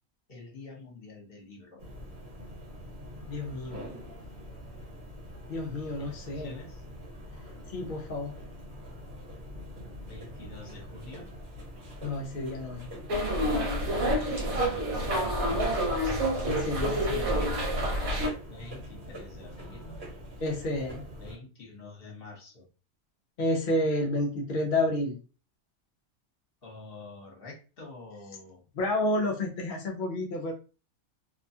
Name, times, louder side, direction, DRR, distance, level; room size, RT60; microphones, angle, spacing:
voice 1, 0.3-1.8 6.0-6.8 10.0-11.3 13.7-14.3 14.6-15.6 18.5-19.9 21.2-22.6 26.6-28.6, left 3 dB, 45° left, -1 dB, 1.2 m, -47 dB
sound 1, 1.8-21.4, equal, 50° right, 1.3 m, -44 dB
voice 2, 3.3-3.9 5.5-6.5 7.7-8.4 12.0-12.9 16.4-17.4 20.4-21.0 23.4-25.2 28.7-30.5, left 1 dB, 60° left, 1 dB, 0.5 m, -30 dB
sound 2, 13.1-18.3, equal, 75° right, 1.2 m, -28 dB
2.7 x 2.2 x 2.6 m, 0.34 s
omnidirectional pair, 1.5 m